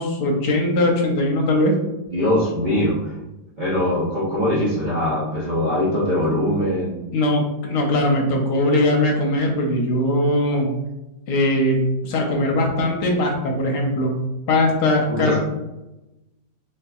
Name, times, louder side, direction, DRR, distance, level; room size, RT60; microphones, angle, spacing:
voice 1, 0.0-1.7 7.1-10.7 11.3-11.8 12.0-14.1 14.5-15.4, left 1 dB, 70° left, 0 dB, 1.1 m, -20 dB
voice 2, 2.1-3.1 3.6-7.0 15.1-15.4, left 1 dB, 70° right, -7 dB, 0.4 m, -22 dB
4.0 x 2.7 x 2.3 m, 0.98 s
omnidirectional pair, 2.0 m